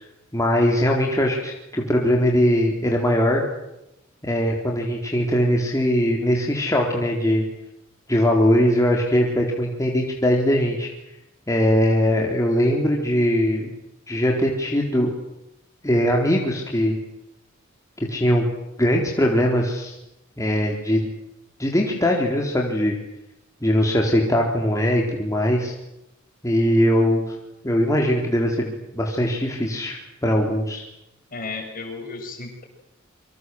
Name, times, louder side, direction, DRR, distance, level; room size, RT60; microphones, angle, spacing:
voice 1, 0.3-3.4 4.2-7.4 8.1-10.9 11.5-13.7 14.1-15.1 15.8-17.0 18.0-18.5 18.8-19.9 20.4-21.0 21.6-23.0 23.6-25.7 26.4-27.4 27.6-30.8, equal, 15° left, 0 dB, 4.1 m, -21 dB
voice 2, 31.3-32.6, left 3 dB, 45° left, 4 dB, 7.0 m, -33 dB
28.0 x 25.0 x 7.9 m, 0.86 s
head